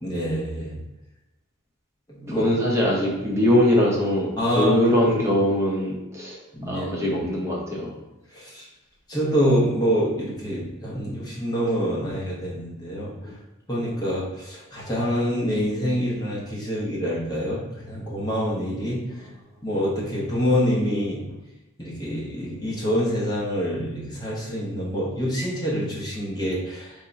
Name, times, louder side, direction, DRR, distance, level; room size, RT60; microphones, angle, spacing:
voice 1, 0.0-0.7 2.1-2.5 4.4-4.8 5.2-5.3 6.5-7.1 8.3-8.7 9.1-13.1 13.7-17.6 17.9-19.0 19.6-21.4 21.8-27.0, equal, 20° left, -5 dB, 0.9 m, -26 dB
voice 2, 2.3-6.4 6.7-7.9 13.2-13.3, left 1 dB, 15° right, -3 dB, 0.7 m, -22 dB
3.7 x 2.2 x 3.9 m, 1.0 s
head